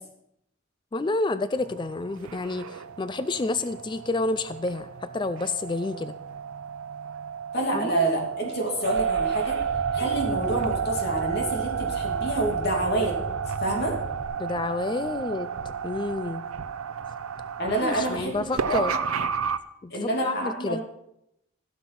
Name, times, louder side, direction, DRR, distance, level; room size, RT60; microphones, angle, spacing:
voice 1, 0.9-4.9 5.1-6.1 7.7-7.9 14.4-15.5 15.8-16.4 17.8-18.9 19.8-20.8, left 3 dB, 20° left, 13 dB, 0.3 m, -29 dB
sound 1, 1.6-19.6, right 7 dB, 85° right, 0.6 m, -32 dB
voice 2, 7.5-9.6 9.9-13.2 13.6-13.9 17.6-18.9 19.9-20.8, right 1 dB, 50° left, 0 dB, 2.7 m, -28 dB
Car / Engine starting, 8.8-14.2, right 1 dB, 60° right, 3.0 m, -38 dB
16.0 x 5.9 x 6.1 m, 0.81 s
head